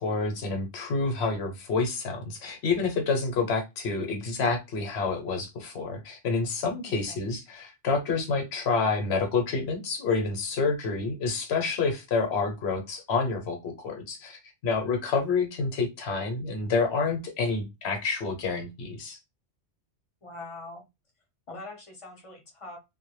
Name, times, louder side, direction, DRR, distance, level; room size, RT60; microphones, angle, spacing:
voice 1, 0.0-19.2, left 4 dB, 65° left, 4 dB, 0.9 m, -28 dB
voice 2, 6.8-7.2 20.2-20.8 21.5-22.8, left 2 dB, 35° left, 1 dB, 0.7 m, -43 dB
2.2 x 2.1 x 3.0 m, 0.23 s
omnidirectional pair, 1.2 m